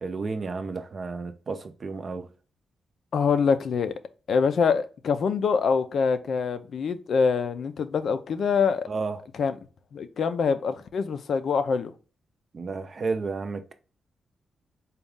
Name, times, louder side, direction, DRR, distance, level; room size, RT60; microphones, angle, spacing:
voice 1, 0.0-2.3 8.9-9.2 12.5-13.7, right 4 dB, 40° right, 0.5 m, -32 dB
voice 2, 3.1-3.9 4.3-8.9 9.3-9.6 9.9-11.9, left 5 dB, 65° left, 0.4 m, -25 dB
4.0 x 2.3 x 3.5 m
cardioid pair, 120°, 0 cm